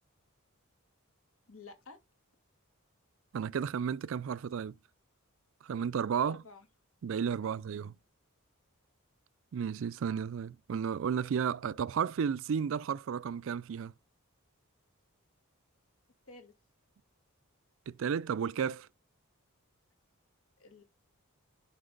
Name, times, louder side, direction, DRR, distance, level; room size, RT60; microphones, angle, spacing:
voice 1, 1.5-2.0 6.2-6.7 7.4-7.6 16.3-16.5 20.6-20.8, left 3 dB, 70° left, 2.3 m, -51 dB
voice 2, 3.3-4.8 5.6-6.4 7.0-7.9 9.5-13.9 17.9-18.9, right 7 dB, 60° right, 0.4 m, -33 dB
11.5 x 4.6 x 3.8 m
head